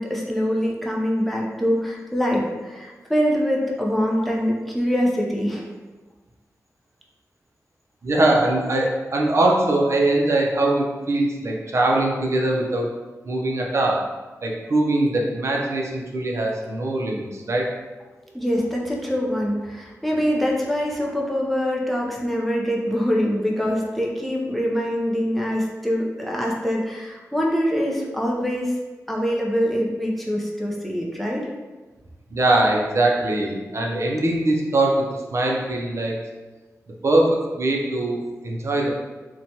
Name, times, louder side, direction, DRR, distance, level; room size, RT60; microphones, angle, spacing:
voice 1, 0.0-5.7 18.3-28.7 29.1-31.5, equal, ahead, -3 dB, 0.5 m, -24 dB
voice 2, 8.0-12.9 13.3-14.0 14.4-17.7 32.3-36.2 37.0-38.9, right 2 dB, 50° right, -1 dB, 0.5 m, -22 dB
2.9 x 2.2 x 2.6 m, 1.3 s
wide cardioid pair, 80°, 6 cm